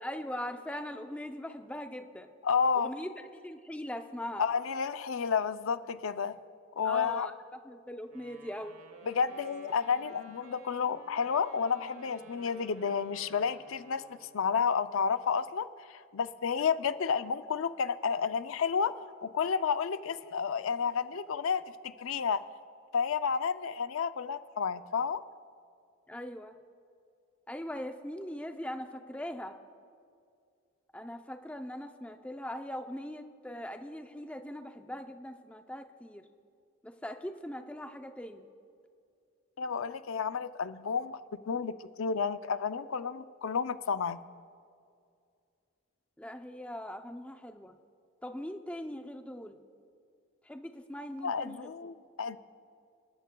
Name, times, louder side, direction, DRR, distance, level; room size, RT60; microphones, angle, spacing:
voice 1, 0.0-2.3 2.7-4.4 6.8-7.3 7.6-8.8 26.1-26.5 27.5-29.6 30.9-36.2 36.8-38.5 46.2-47.8 48.2-49.6 50.4-51.9, left 1 dB, 5° left, 6 dB, 0.5 m, -41 dB
voice 2, 2.4-2.9 4.4-6.4 6.8-7.3 9.1-14.0 14.3-18.9 19.2-22.4 22.9-25.2 39.6-41.2 41.5-44.2 51.2-52.4, left 6 dB, 85° left, 12 dB, 0.5 m, -31 dB
Wind instrument woodwind instrument, 8.1-14.6, right 3 dB, 85° right, 1.1 m, -54 dB
29.0 x 13.0 x 2.3 m, 2.3 s
head